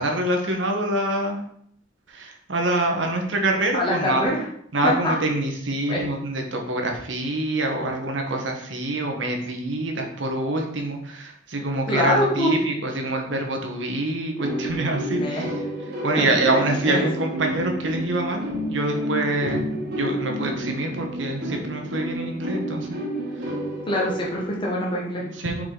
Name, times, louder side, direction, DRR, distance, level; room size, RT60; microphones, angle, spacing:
voice 1, 0.0-1.4 2.1-4.2 4.7-15.5 16.0-23.0 23.4-23.5 25.2-25.7, right 2 dB, 70° right, 2 dB, 1.2 m, -26 dB
voice 2, 3.7-4.4 4.8-5.2 5.9-6.0 11.9-12.5 15.1-15.5 16.1-16.3 16.8-17.1 23.9-25.3, left 1 dB, 25° left, -4 dB, 1.1 m, -24 dB
sound 1, 14.4-24.6, equal, 55° right, 1.6 m, -30 dB
5.0 x 4.9 x 3.8 m, 0.67 s
head